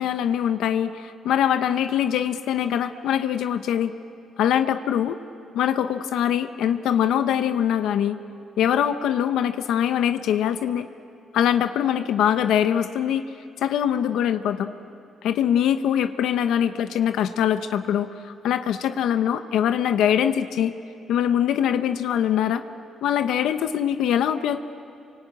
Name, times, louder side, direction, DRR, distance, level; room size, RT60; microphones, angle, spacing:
voice 1, 0.0-3.9 4.4-5.2 5.5-8.2 8.6-10.9 11.3-13.2 13.6-14.7 15.2-20.7 21.1-22.6 23.0-24.7, left 9 dB, 80° left, 9 dB, 0.8 m, -23 dB
28.0 x 24.0 x 8.9 m, 2.7 s
cardioid pair, 90°, 0 cm